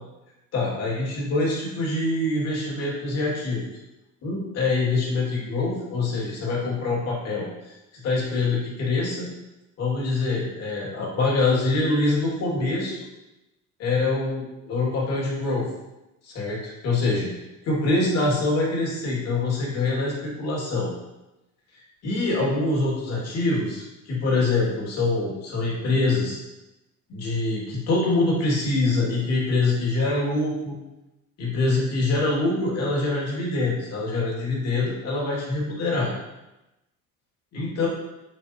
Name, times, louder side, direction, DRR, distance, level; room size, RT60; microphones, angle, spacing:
voice 1, 0.5-3.6 4.2-9.3 9.8-13.0 13.8-15.7 16.2-17.3 17.6-20.9 21.7-26.4 27.1-30.8 31.4-36.1 37.5-37.9, left 2 dB, 55° left, -4 dB, 2.8 m, -25 dB
7.7 x 6.8 x 3.1 m, 0.98 s
cardioid pair, 175°, 30 cm